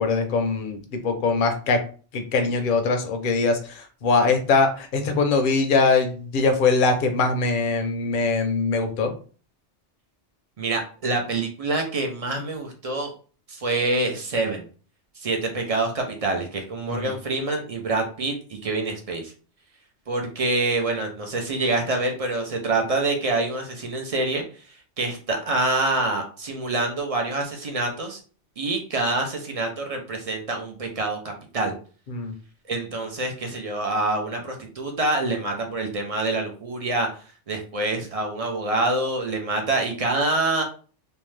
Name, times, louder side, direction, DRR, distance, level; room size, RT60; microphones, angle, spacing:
voice 1, 0.0-1.8 2.1-9.1 16.9-17.1 32.1-32.3, left 4 dB, 55° left, 6 dB, 0.6 m, -22 dB
voice 2, 10.6-13.1 13.5-14.6 15.2-19.3 20.1-24.4 25.0-28.2 28.6-31.7 32.7-37.1 37.5-40.6, right 2 dB, 50° right, 2 dB, 0.4 m, -26 dB
2.7 x 2.1 x 3.1 m, 0.39 s
omnidirectional pair, 1.2 m